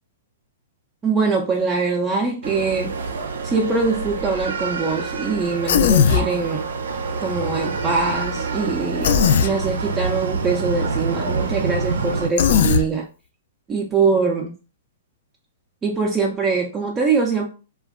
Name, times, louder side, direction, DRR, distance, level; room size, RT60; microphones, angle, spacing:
voice 1, 1.0-2.9 3.4-6.6 7.2-9.1 9.4-13.1 13.7-14.5 15.8-17.5, right 4 dB, 15° right, -1 dB, 0.4 m, -23 dB
sound 1, 2.4-12.3, right 4 dB, 85° right, 0.5 m, -27 dB
Human voice, 5.7-6.3 9.0-9.5 12.4-12.8, left 8 dB, 65° left, 0.3 m, -16 dB
2.2 x 2.1 x 3.5 m, 0.35 s
hypercardioid pair, 140°, 0 cm